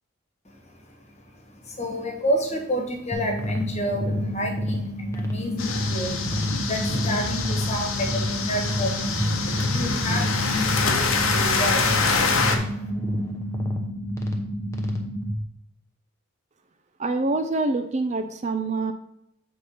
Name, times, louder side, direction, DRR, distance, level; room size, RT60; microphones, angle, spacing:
voice 1, 0.4-12.9, equal, 30° left, 2 dB, 1.4 m, -31 dB
sound 1, 3.1-15.3, equal, 15° left, 0.9 m, -29 dB
sound 2, 5.6-12.6, left 4 dB, 85° left, 1.0 m, -25 dB
voice 2, 17.0-18.9, right 3 dB, 35° right, 8 dB, 0.4 m, -25 dB
7.6 x 4.2 x 5.4 m, 0.80 s
head